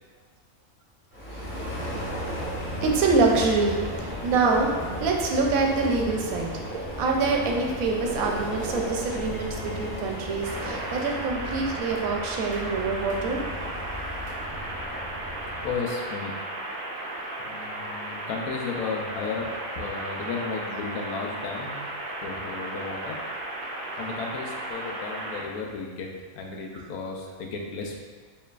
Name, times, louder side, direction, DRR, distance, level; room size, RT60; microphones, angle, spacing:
sound 1, 1.1-15.7, equal, 15° left, 0.4 m, -35 dB
voice 1, 2.8-6.5 7.0-13.4 26.7-26.8, right 3 dB, 75° right, 1 dB, 1.0 m, -25 dB
sound 2, 10.4-25.4, right 1 dB, 60° right, 0.6 m, -35 dB
voice 2, 15.6-16.3 17.5-19.5 19.8-21.8 22.2-23.2 24.0-26.1 26.3-28.0, left 4 dB, 90° left, 1 dB, 1.1 m, -34 dB
4.4 x 3.1 x 2.4 m, 1.5 s
omnidirectional pair, 1.5 m